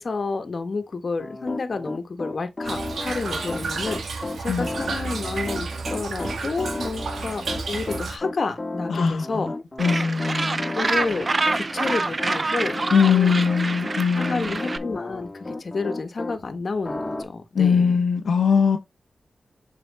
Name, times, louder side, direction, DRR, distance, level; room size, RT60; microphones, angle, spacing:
voice 1, 0.0-9.5 10.7-13.4 14.1-18.0, left 4 dB, 55° left, 1.5 m, -30 dB
Piano, 1.2-16.4 16.8-17.2, left 2 dB, 30° left, 1.7 m, -34 dB
Toilet flush / Trickle dribble, 2.6-8.2, right 4 dB, 85° right, 1.6 m, -31 dB
voice 2, 8.9-9.4 9.8-10.8 12.9-14.6 17.5-18.8, left 6 dB, 80° left, 1.0 m, -21 dB
Gull seagull, 9.8-14.8, right 3 dB, 40° right, 0.7 m, -26 dB
7.1 x 5.0 x 3.6 m
cardioid pair, 60°, 0 cm